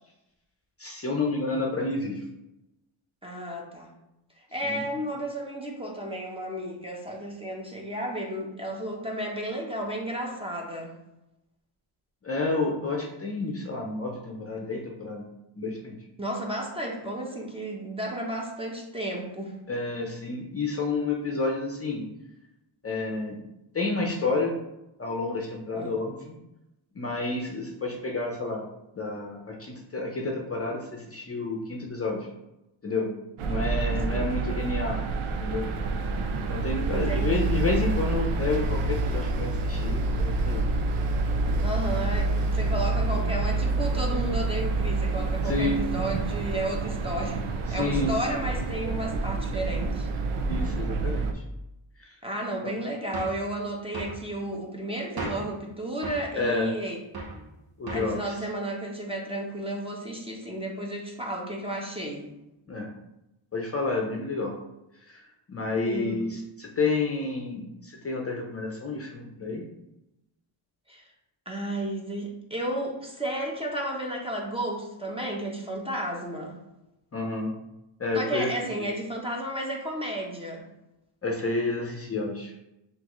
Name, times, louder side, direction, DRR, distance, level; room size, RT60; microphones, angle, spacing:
voice 1, 0.8-2.2 4.6-4.8 12.2-15.3 15.6-16.0 19.7-22.0 22.8-23.4 23.7-24.5 25.0-26.3 27.0-28.6 28.9-32.2 32.8-33.1 33.4-35.0 35.4-35.7 36.4-40.6 45.4-45.8 47.8-48.4 50.5-51.4 52.0-52.1 52.6-52.7 56.3-56.7 57.8-58.3 62.7-62.9 63.5-64.5 65.1-65.2 65.5-69.6 77.1-77.5 78.0-78.5 81.2-82.5, left 3 dB, 30° left, 0 dB, 0.6 m, -30 dB
voice 2, 3.2-3.9 4.5-10.9 16.2-19.5 25.8-26.0 34.1-34.3 36.9-37.5 41.6-47.4 47.7-50.1 52.2-57.0 57.3-57.4 57.9-62.3 65.8-66.2 70.9-71.0 71.5-76.6 78.1-80.6, right 1 dB, 10° right, -1 dB, 0.8 m, -33 dB
sound 1, 33.4-51.3, right 3 dB, 80° right, 0.6 m, -27 dB
sound 2, 53.1-53.4 53.9-54.2 55.2-55.5 56.0-56.3 57.1-57.4 57.9-58.2, right 2 dB, 45° right, 1.0 m, -35 dB
5.9 x 2.6 x 3.0 m, 0.92 s
cardioid pair, 105°, 49 cm